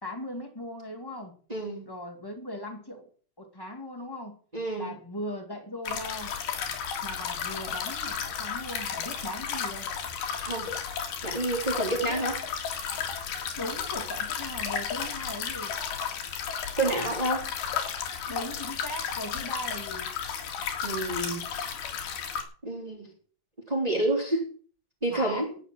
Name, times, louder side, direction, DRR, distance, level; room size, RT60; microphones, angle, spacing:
voice 1, 0.0-1.3 1.8-3.1 3.4-4.4 4.8-6.3 7.0-9.9 12.0-12.3 13.5-15.7 18.3-20.1 25.1-25.6, left 1 dB, 10° left, 4 dB, 1.3 m, -38 dB
voice 2, 1.5-1.8 4.5-4.9 10.4-10.7 11.2-12.4 16.8-17.5 20.8-21.4 22.6-23.1 23.7-24.5 25.0-25.5, right 2 dB, 10° right, 0 dB, 3.4 m, -28 dB
sound 1, 5.8-22.4, left 7 dB, 85° left, 4.1 m, -33 dB
12.0 x 9.1 x 7.7 m, 0.44 s
omnidirectional pair, 4.3 m